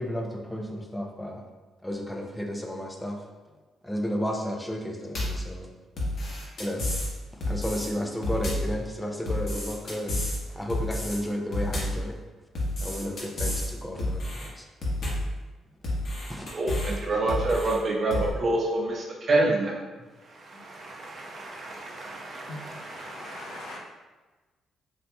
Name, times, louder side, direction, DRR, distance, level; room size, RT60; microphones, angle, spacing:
voice 1, 0.0-1.5 1.8-3.3 3.8-5.7 6.6-6.9 7.3-10.2 10.5-12.2 12.8-14.6 15.1-15.2 16.2-16.8, equal, 5° left, 0.5 m, -33 dB
sound 1, 5.1-5.5 6.0-7.1 7.4-7.9 8.2-8.7 9.3-10.4 10.7-11.2 11.5-12.0 12.5-13.7 14.0-14.5 14.8-15.3 15.8-17.0 17.3-17.8 18.1-18.3, left 1 dB, 55° left, 1.0 m, -30 dB
voice 2, 16.5-19.8 20.3-23.8, right 2 dB, 45° right, 0.7 m, -28 dB
voice 3, 22.5-23.8, left 2 dB, 80° left, 0.8 m, -42 dB
3.9 x 2.8 x 2.2 m
cardioid pair, 90°, 0 cm